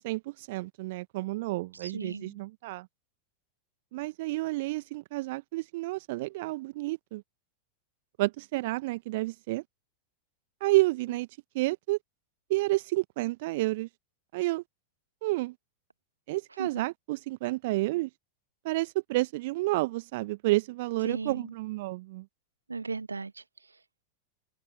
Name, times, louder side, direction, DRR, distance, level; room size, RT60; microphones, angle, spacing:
voice 1, 0.0-2.9 3.9-7.2 8.2-9.6 10.6-11.3 11.5-12.0 12.5-13.9 14.3-14.6 15.2-15.5 16.3-18.1 18.6-22.2, right 20 dB, 50° right, 1.1 m, -30 dB
voice 2, 1.8-2.4 16.6-16.8 21.0-21.5 22.7-23.4, right 4 dB, 80° right, 1.6 m, -36 dB
open air
figure-of-eight pair, 90°, 0 cm